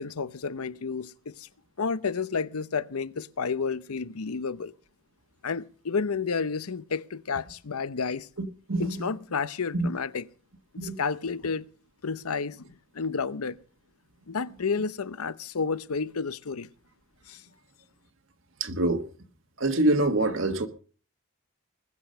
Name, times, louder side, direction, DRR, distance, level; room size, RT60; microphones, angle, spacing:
voice 1, 0.0-1.5 1.8-4.7 5.4-8.3 8.8-10.3 10.8-11.6 12.0-13.6 14.3-16.7 17.3-17.4, left 5 dB, 85° left, 0.8 m, -31 dB
voice 2, 8.7-9.0 9.7-9.9 10.8-11.0 18.6-19.0 19.6-20.7, right 2 dB, 60° right, 1.4 m, -25 dB
20.0 x 8.1 x 6.5 m
head